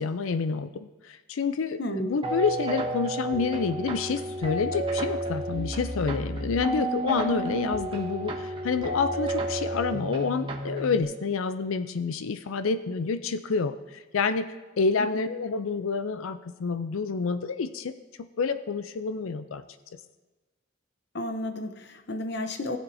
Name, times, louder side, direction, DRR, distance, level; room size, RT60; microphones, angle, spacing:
voice 1, 0.0-14.5 14.8-17.9 18.4-19.6, left 5 dB, 80° left, 12 dB, 0.5 m, -28 dB
voice 2, 1.8-2.2 15.0-15.3 21.1-22.8, left 1 dB, 55° left, 7 dB, 0.8 m, -32 dB
sound 1, 2.2-11.0, right 1 dB, 25° right, 1.0 m, -31 dB
19.0 x 7.2 x 2.7 m, 1.2 s
head